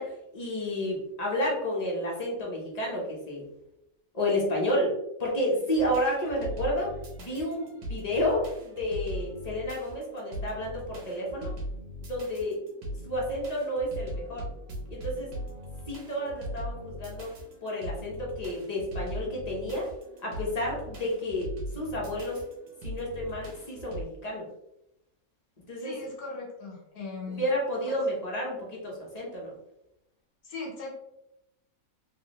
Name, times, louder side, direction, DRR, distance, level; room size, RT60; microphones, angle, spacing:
voice 1, 0.0-3.5 4.1-11.5 12.0-12.6 13.0-14.5 14.9-15.3 15.9-17.3 17.6-19.9 20.2-21.5 21.7-22.4 22.8-24.4 25.7-25.9 27.4-29.5, left 1 dB, 30° left, -3 dB, 1.0 m, -31 dB
sound 1, 5.7-24.0, equal, 85° right, 1.4 m, -40 dB
voice 2, 25.8-27.4 30.4-30.9, left 3 dB, 80° left, -3 dB, 1.6 m, -39 dB
3.2 x 3.2 x 3.0 m, 0.86 s
omnidirectional pair, 1.5 m